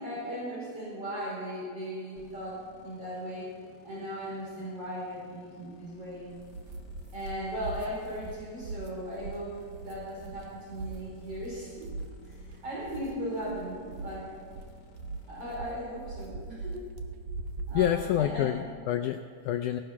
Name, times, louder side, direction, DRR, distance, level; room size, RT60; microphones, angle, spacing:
voice 1, 0.0-3.5 3.8-6.3 7.1-9.6 9.8-11.9 12.2-14.3 15.3-16.8 17.7-18.5, equal, 40° right, -6 dB, 5.4 m, -37 dB
sound 1, 2.2-15.7, left 5 dB, 60° left, 2.4 m, -56 dB
sound 2, 6.3-18.6, right 3 dB, 70° right, 1.6 m, -42 dB
voice 2, 17.7-19.8, left 11 dB, 80° left, 6 dB, 1.8 m, -28 dB
18.0 x 13.0 x 5.8 m, 2.2 s
omnidirectional pair, 4.1 m